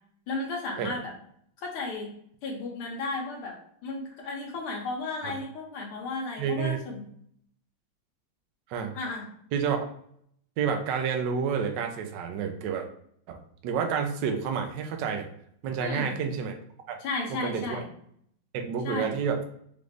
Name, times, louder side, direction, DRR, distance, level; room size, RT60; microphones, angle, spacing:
voice 1, 0.3-1.1 1.6-2.1 2.4-3.6 3.8-7.0 8.9-9.3 15.8-16.1 17.0-17.9 18.8-19.2, left 3 dB, 85° left, -1 dB, 1.8 m, -34 dB
voice 2, 6.4-6.8 8.7-9.0 9.5-9.8 10.6-12.9 13.3-15.3 15.6-16.6 16.9-17.0 17.3-17.8 18.5-19.4, right 6 dB, 70° right, 4 dB, 1.1 m, -29 dB
4.9 x 2.5 x 3.2 m, 0.67 s
omnidirectional pair, 2.3 m